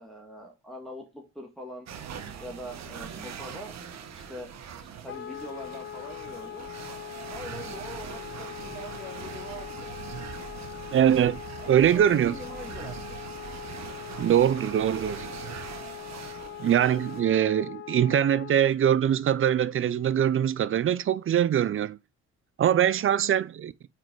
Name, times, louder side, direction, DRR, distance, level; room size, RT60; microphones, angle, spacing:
voice 1, 0.0-1.9 2.4-3.8 4.1-4.5 4.8-6.7 7.3-9.9 11.6-13.2 23.0-23.2, left 1 dB, ahead, 1.7 m, -43 dB
sound 1, 1.9-17.2, right 7 dB, 60° right, 1.2 m, -42 dB
Wind instrument woodwind instrument, 5.1-18.6, left 11 dB, 45° left, 0.4 m, -41 dB
voice 2, 10.9-11.4 11.7-12.3 14.2-15.3 16.6-22.0 22.6-23.7, right 10 dB, 45° right, 0.5 m, -23 dB
5.0 x 4.6 x 4.4 m
cardioid pair, 90°, 30 cm